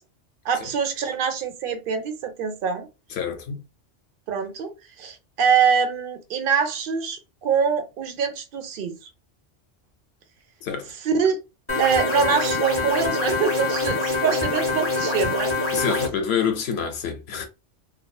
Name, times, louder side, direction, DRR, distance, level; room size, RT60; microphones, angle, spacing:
voice 1, 0.4-2.9 4.3-4.7 5.0-9.1 11.0-11.4 11.8-15.5, right 6 dB, 60° right, 0.6 m, -24 dB
voice 2, 3.1-3.6 10.6-10.9 15.7-17.5, left 7 dB, 65° left, 0.8 m, -27 dB
sound 1, 11.7-16.1, left 3 dB, 20° left, 0.4 m, -24 dB
2.6 x 2.2 x 2.3 m
omnidirectional pair, 1.2 m